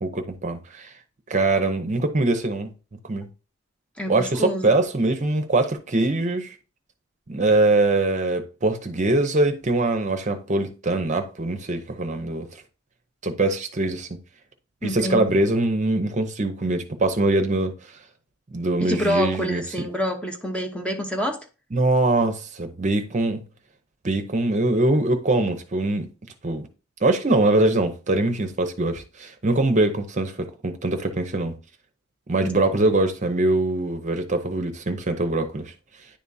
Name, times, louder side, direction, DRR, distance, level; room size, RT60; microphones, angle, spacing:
voice 1, 0.0-0.9 1.3-2.7 3.0-3.3 4.1-6.5 7.3-12.5 13.2-14.2 14.8-17.7 18.5-19.9 21.7-23.4 24.0-26.1 26.4-26.7 27.0-31.6 32.3-35.7, right 2 dB, 35° right, 0.7 m, -23 dB
voice 2, 4.0-4.7 14.8-15.3 18.8-21.5 32.4-32.5, equal, 5° left, 0.7 m, -27 dB
10.0 x 3.5 x 2.7 m
head